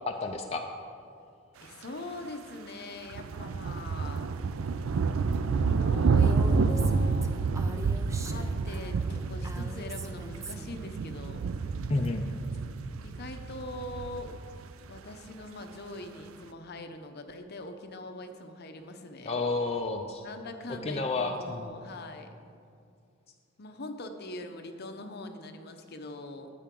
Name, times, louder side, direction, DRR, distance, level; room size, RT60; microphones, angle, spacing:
voice 1, 0.1-0.7 11.9-12.2 19.2-20.2 20.7-21.8, left 3 dB, 30° left, 2 dB, 0.5 m, -31 dB
voice 2, 1.6-4.3 5.5-7.3 8.2-11.5 13.0-14.4 14.9-19.4 20.2-22.3 23.6-26.5, left 2 dB, 55° left, 6 dB, 0.8 m, -42 dB
sound 1, 3.1-15.0, right 4 dB, 85° right, 0.4 m, -29 dB
Female speech woman speaking, 6.2-10.8, right 1 dB, 15° right, 0.5 m, -42 dB
13.0 x 9.2 x 3.8 m, 2.4 s
head